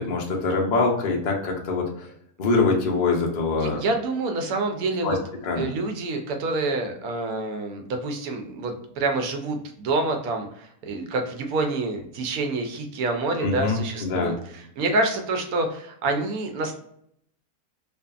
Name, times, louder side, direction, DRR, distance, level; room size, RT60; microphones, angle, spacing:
voice 1, 0.0-2.1 2.4-3.8 5.0-5.2 5.4-5.7 13.4-14.3, left 3 dB, 60° left, -1 dB, 0.4 m, -24 dB
voice 2, 3.6-5.2 5.6-16.7, right 2 dB, 75° right, 4 dB, 1.0 m, -27 dB
2.6 x 2.5 x 2.3 m, 0.70 s
omnidirectional pair, 1.6 m